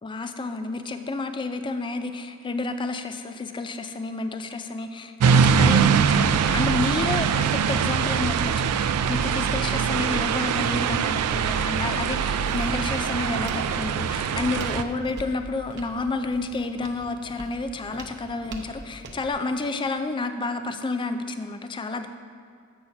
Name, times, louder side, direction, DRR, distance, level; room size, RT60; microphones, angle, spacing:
voice 1, 0.0-22.1, left 3 dB, 20° left, 8 dB, 0.3 m, -30 dB
sound 1, 5.2-14.8, right 7 dB, 90° right, 0.3 m, -22 dB
Walk footsteps, 11.2-19.3, right 2 dB, 50° right, 0.7 m, -44 dB
7.9 x 4.2 x 5.7 m, 2.3 s
head